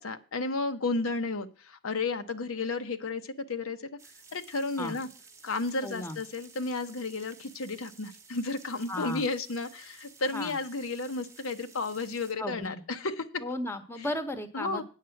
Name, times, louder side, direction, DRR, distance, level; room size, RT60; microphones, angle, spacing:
voice 1, 0.0-3.9 4.3-5.1 5.4-13.4 14.0-14.1 14.5-14.8, left 3 dB, 80° left, 8 dB, 0.9 m, -33 dB
sound 1, 4.0-12.3, right 4 dB, 15° right, 0.9 m, -54 dB
voice 2, 5.8-6.2 8.9-9.2 10.3-10.5 12.4-12.8 13.4-14.8, left 1 dB, 10° left, 10 dB, 0.9 m, -35 dB
9.1 x 7.4 x 5.8 m, 0.37 s
head